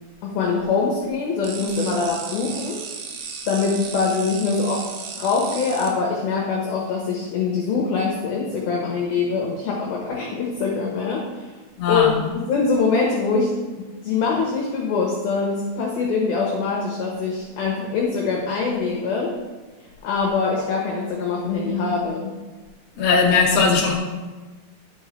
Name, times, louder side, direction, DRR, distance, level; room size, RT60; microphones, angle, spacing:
voice 1, 0.2-2.8 3.5-11.5 11.9-12.2 12.5-19.3 20.0-22.3, left 4 dB, 80° left, -2 dB, 2.2 m, -23 dB
sound 1, 1.4-5.9, right 6 dB, 75° right, 2.8 m, -35 dB
voice 2, 11.8-12.1 22.9-24.0, left 4 dB, 65° left, -3 dB, 1.6 m, -18 dB
11.0 x 6.2 x 3.2 m, 1.3 s
omnidirectional pair, 5.7 m